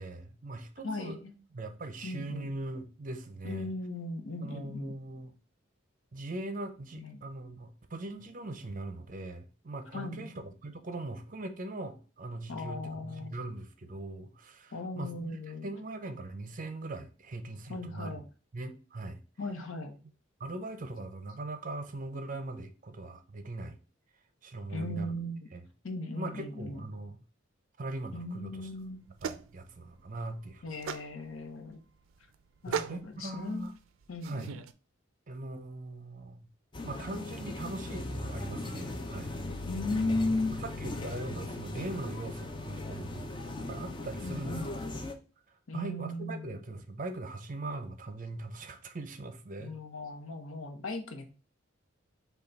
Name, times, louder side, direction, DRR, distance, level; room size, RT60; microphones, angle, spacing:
voice 1, 0.0-1.2 1.5-3.7 4.4-5.3 6.1-15.4 15.6-18.2 18.5-19.2 20.4-23.8 24.4-25.1 25.5-25.6 26.1-27.2 27.8-28.7 29.2-30.6 32.7-33.7 34.2-34.5 35.3-36.5 36.8-39.3 40.6-43.3 43.6-44.6 45.5-49.7, right 2 dB, 40° right, 0.6 m, -40 dB
voice 2, 0.8-1.3 2.0-2.5 3.4-4.9 6.9-7.2 9.9-10.3 12.5-13.4 14.7-15.7 17.7-18.2 19.4-20.0 24.7-25.5 25.8-26.8 28.1-29.0 30.6-31.8 32.6-33.7 34.1-34.6 39.7-40.6 44.2-44.7 45.7-46.6 49.6-51.3, left 2 dB, 80° left, 0.9 m, -37 dB
sound 1, 28.6-34.7, right 7 dB, 90° right, 0.4 m, -41 dB
sound 2, 36.7-45.1, left 2 dB, 25° left, 0.5 m, -38 dB
5.5 x 2.3 x 3.9 m
head